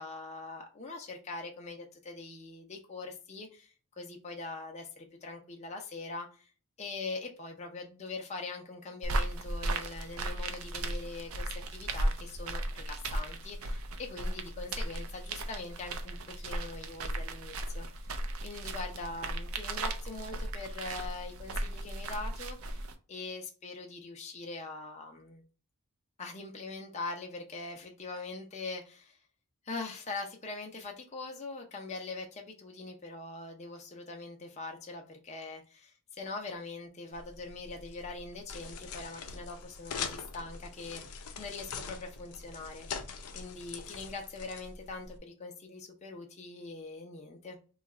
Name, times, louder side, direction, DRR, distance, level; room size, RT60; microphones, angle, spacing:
voice 1, 0.0-6.4 6.8-17.9 18.4-25.4 26.2-29.2 29.6-42.9 43.3-47.6, left 3 dB, 30° left, 0.5 m, -42 dB
sound 1, 9.0-23.0, right 1 dB, 65° right, 0.5 m, -36 dB
sound 2, 37.1-45.2, left 5 dB, 90° left, 0.6 m, -43 dB
2.8 x 2.4 x 4.1 m
head